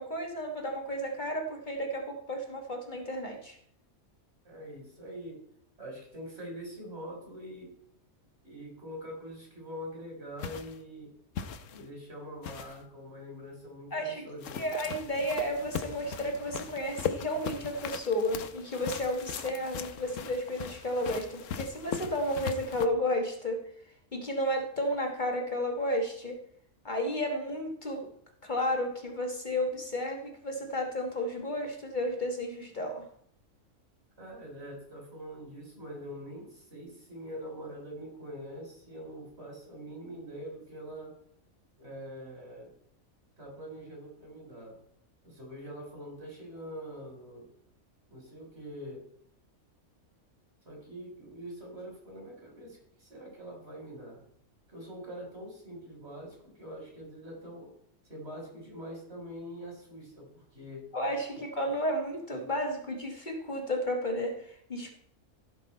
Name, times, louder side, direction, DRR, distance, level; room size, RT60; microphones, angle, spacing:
voice 1, 0.0-3.6 13.9-14.3 14.6-23.6 24.1-26.4 26.8-28.1 28.4-33.1 60.9-64.9, equal, 35° left, 3 dB, 1.4 m, -32 dB
voice 2, 4.4-5.4 5.8-7.7 8.4-11.1 11.7-14.7 34.2-41.2 41.8-42.7 43.4-44.8 45.2-47.5 48.1-49.1 50.6-54.2 54.7-57.7 58.0-60.9 61.3-61.4, equal, 45° right, -1 dB, 4.3 m, -44 dB
sound 1, 10.4-10.8 11.3-11.9 12.4-12.8 14.4-22.8, left 7 dB, 65° left, 1.1 m, -39 dB
15.5 x 6.3 x 4.3 m, 0.66 s
omnidirectional pair, 1.5 m